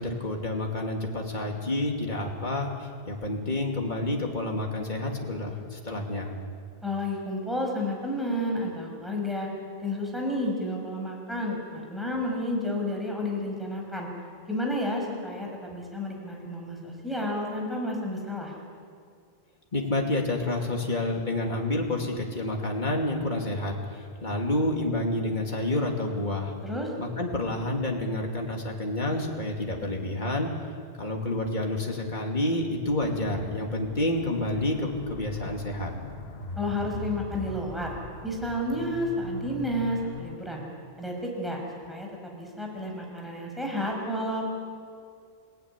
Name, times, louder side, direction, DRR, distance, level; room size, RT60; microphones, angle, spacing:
voice 1, 0.0-6.3 19.7-26.5 27.0-30.5 31.0-35.9, left 1 dB, 50° left, 0 dB, 2.8 m, -29 dB
voice 2, 6.8-9.5 9.8-14.1 14.5-18.5 26.6-26.9 36.6-37.9 38.2-40.6 41.0-41.6 41.9-44.4, left 1 dB, ahead, -1 dB, 6.3 m, -31 dB
sound 1, 32.9-40.4, left 4 dB, 70° left, 1.6 m, -40 dB
29.0 x 17.0 x 9.9 m, 2.2 s
omnidirectional pair, 1.0 m